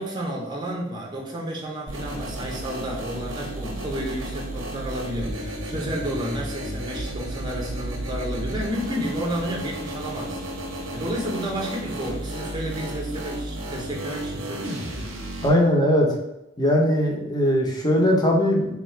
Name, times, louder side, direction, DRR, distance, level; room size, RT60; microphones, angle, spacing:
voice 1, 0.0-10.4 10.7-14.9, right 1 dB, 20° right, -2 dB, 0.7 m, -31 dB
sound 1, 1.9-15.5, right 1 dB, 80° right, 0.9 m, -33 dB
voice 2, 15.4-16.1 16.6-18.7, equal, 20° left, 0 dB, 0.7 m, -20 dB
3.3 x 2.4 x 4.3 m, 0.87 s
head